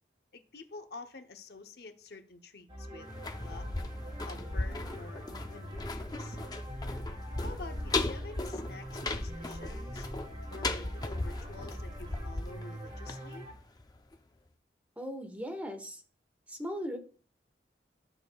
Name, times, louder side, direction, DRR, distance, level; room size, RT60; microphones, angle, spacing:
voice 1, 0.3-3.1 3.4-3.7 4.2-6.4 7.4-10.1 10.5-13.5, left 3 dB, 60° left, 0.8 m, -49 dB
sound 1, 2.7-13.5, equal, 35° right, 2.9 m, -44 dB
sound 2, 3.0-13.8 14.1-14.2, left 2 dB, 20° left, 0.5 m, -37 dB
voice 2, 15.0-16.0 16.5-17.0, equal, 10° right, 1.0 m, -38 dB
12.5 x 6.5 x 2.3 m
head